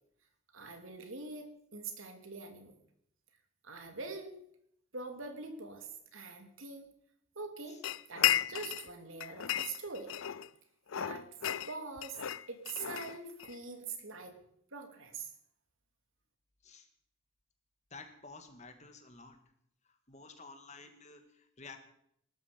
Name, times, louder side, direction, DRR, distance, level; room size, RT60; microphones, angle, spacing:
voice 1, 0.5-2.7 3.6-4.4 4.9-6.9 7.3-7.8 8.1-10.1 11.0-11.3 11.7-12.2 12.5-14.4 14.7-15.3, right 4 dB, 75° right, 5 dB, 2.9 m, -44 dB
sound 1, 7.8-8.9 9.2-10.5 10.9-13.6, left 11 dB, 75° left, 0.5 m, -34 dB
voice 2, 17.9-19.4 20.1-21.8, left 3 dB, 35° left, 6 dB, 2.1 m, -51 dB
18.5 x 13.0 x 5.3 m, 0.71 s
head